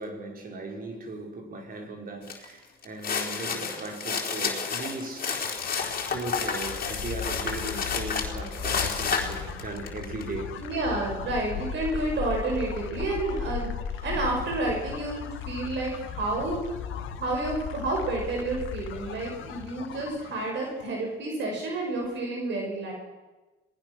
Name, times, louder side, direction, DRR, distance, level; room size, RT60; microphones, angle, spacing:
voice 1, 0.0-5.4 5.7-10.6, right 2 dB, 45° right, 3 dB, 4.9 m, -38 dB
sound 1, 2.3-2.4 2.8-10.2, left 5 dB, 45° left, 4.0 m, -30 dB
sound 2, 5.1-20.8, left 7 dB, 75° left, 2.0 m, -37 dB
voice 2, 10.6-16.7 17.2-22.9, right 2 dB, 65° right, 0 dB, 6.2 m, -30 dB
27.0 x 19.0 x 6.3 m, 1.2 s
cardioid pair, 95°, 20 cm